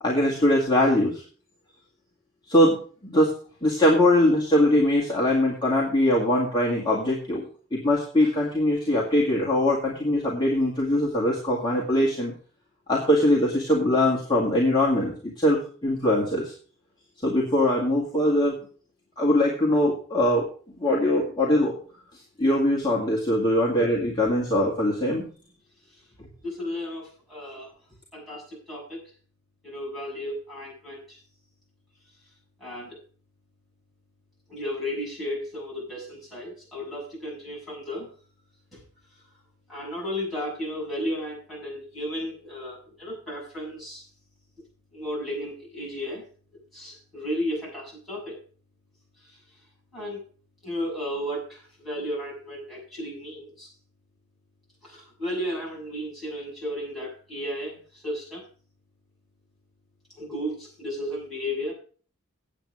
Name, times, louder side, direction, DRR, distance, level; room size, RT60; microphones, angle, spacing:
voice 1, 0.0-1.2 2.5-2.8 3.0-3.3 3.6-7.4 7.7-12.3 12.9-16.5 17.2-18.6 19.2-20.5 20.8-21.7 22.4-25.2, left 1 dB, 20° left, -4 dB, 2.1 m, -22 dB
voice 2, 26.4-27.7 28.1-29.0 29.6-31.2 32.6-33.0 34.5-38.1 38.7-38.8 39.7-44.0 44.9-46.2 46.5-48.4 49.2-49.4 49.9-50.2 50.6-53.7 54.8-58.4 60.2-61.7, equal, ahead, -6 dB, 7.1 m, -34 dB
9.0 x 8.5 x 6.3 m, 0.42 s
head